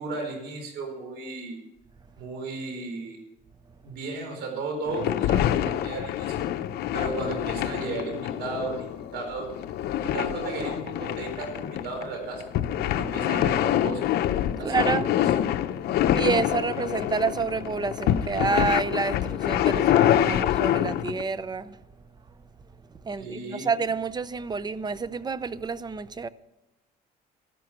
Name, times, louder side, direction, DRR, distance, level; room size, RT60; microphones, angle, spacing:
voice 1, 0.0-1.6 2.2-3.2 3.8-6.4 6.9-8.9 9.1-9.5 10.0-12.4 13.0-14.0 14.6-15.1 23.2-23.7, right 3 dB, 75° right, 4.4 m, -34 dB
sound 1, 4.9-21.2, left 11 dB, 70° left, 0.7 m, -26 dB
voice 2, 14.6-15.1 16.1-21.8 23.0-26.3, right 4 dB, 25° right, 0.6 m, -28 dB
13.0 x 11.5 x 5.9 m
cardioid pair, 110°, 17 cm